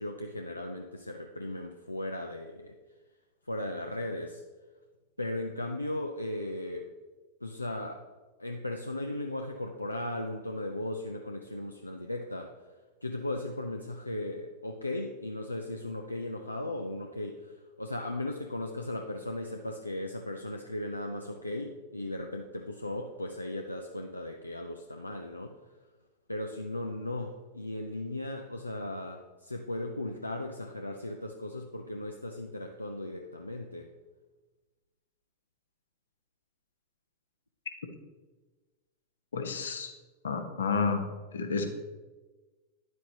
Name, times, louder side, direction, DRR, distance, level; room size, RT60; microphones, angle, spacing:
voice 1, 0.0-2.7 3.5-4.4 5.2-6.9 7.4-8.1 8.4-12.5 13.0-25.6 26.3-33.9, left 1 dB, 85° left, 3 dB, 0.5 m, -37 dB
voice 2, 39.3-39.9 40.2-41.0 41.3-41.7, left 5 dB, 70° left, 5 dB, 1.0 m, -30 dB
10.0 x 7.5 x 2.9 m, 1.2 s
figure-of-eight pair, 90°, 0 cm